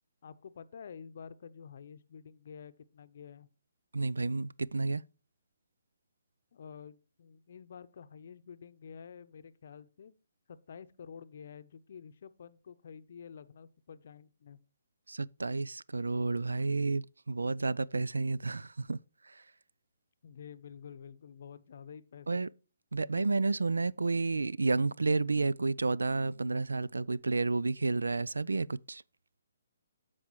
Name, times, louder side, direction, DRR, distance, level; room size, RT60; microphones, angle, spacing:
voice 1, 0.2-3.5 6.5-10.1 10.5-14.6 20.2-22.5 23.1-23.3, left 7 dB, 60° left, 0.7 m, -49 dB
voice 2, 3.9-5.0 15.1-19.0 19.2-19.4 22.3-22.5 22.9-29.0, right 3 dB, 90° right, 0.3 m, -31 dB
13.0 x 4.7 x 3.0 m
hypercardioid pair, 145°, 0 cm